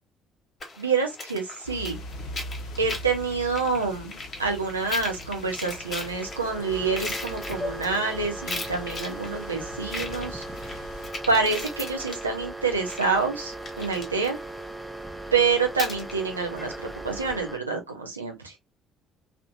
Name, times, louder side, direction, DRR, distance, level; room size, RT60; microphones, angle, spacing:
sound 1, 0.6-17.3, left 3 dB, 35° left, 0.9 m, -40 dB
voice 1, 0.8-2.0 2.8-4.1 4.4-10.4 11.3-14.4 15.3-18.6, right 4 dB, 85° right, 0.5 m, -27 dB
sound 2, 1.6-11.1, left 1 dB, 65° left, 0.6 m, -42 dB
sound 3, 5.4-17.6, right 2 dB, 5° right, 0.4 m, -38 dB
2.8 x 2.1 x 2.5 m
figure-of-eight pair, 50°, 0 cm